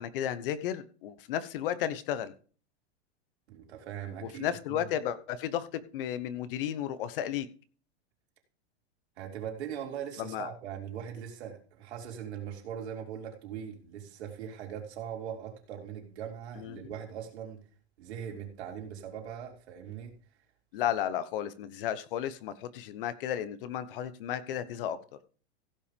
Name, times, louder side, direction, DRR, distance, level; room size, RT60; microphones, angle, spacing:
voice 1, 0.0-2.3 4.2-7.5 10.2-10.5 16.6-16.8 20.7-25.0, left 10 dB, 55° left, 1.1 m, -33 dB
voice 2, 3.5-4.9 9.2-17.6 18.0-20.1 20.8-20.9, right 8 dB, 70° right, 3.8 m, -40 dB
16.0 x 5.8 x 5.3 m
supercardioid pair, 165°, 34 cm